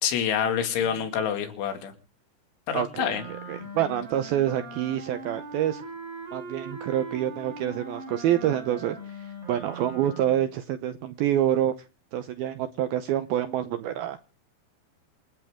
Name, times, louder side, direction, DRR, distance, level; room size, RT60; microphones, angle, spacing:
voice 1, 0.0-1.9 2.7-3.2, left 8 dB, 80° left, 7 dB, 4.7 m, -27 dB
voice 2, 2.7-3.2 3.5-5.8 6.3-11.7 12.1-14.2, right 11 dB, 80° right, 10 dB, 2.2 m, -27 dB
Wind instrument woodwind instrument, 3.1-10.5, right 2 dB, 20° right, 4.3 m, -41 dB
28.0 x 10.5 x 3.6 m, 0.35 s
omnidirectional pair, 5.4 m